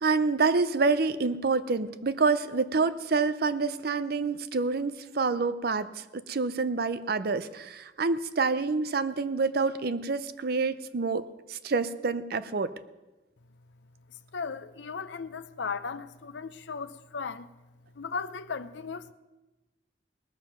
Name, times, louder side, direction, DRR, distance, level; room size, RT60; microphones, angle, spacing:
voice 1, 0.0-11.2 11.5-12.7, right 4 dB, 55° right, 14 dB, 0.6 m, -27 dB
voice 2, 14.3-17.5 18.0-19.1, left 5 dB, 75° left, 11 dB, 0.6 m, -36 dB
19.0 x 7.4 x 6.0 m, 1.1 s
head